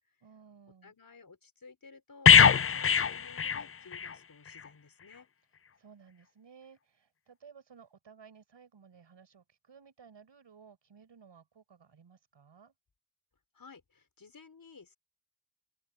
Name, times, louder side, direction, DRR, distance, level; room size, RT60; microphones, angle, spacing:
voice 1, 0.2-0.9 5.8-12.7, right 6 dB, 70° right, 7.0 m, -57 dB
voice 2, 0.8-5.3 13.5-15.0, left 4 dB, 50° left, 5.5 m, -55 dB
sound 1, 2.3-4.2 4.5-4.7, left 7 dB, 30° left, 0.5 m, -22 dB
open air
cardioid pair, 55°, 45 cm